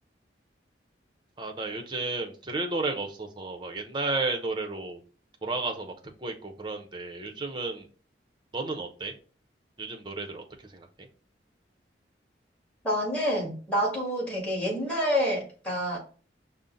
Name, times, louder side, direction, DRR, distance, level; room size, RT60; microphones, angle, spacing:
voice 1, 1.4-5.0 5.4-5.9 6.2-7.9 8.5-9.1 9.8-10.4 10.7-11.1, right 3 dB, 25° right, 3 dB, 0.7 m, -32 dB
voice 2, 12.8-16.0, equal, 5° left, -3 dB, 1.7 m, -28 dB
5.4 x 2.1 x 3.8 m, 0.39 s
head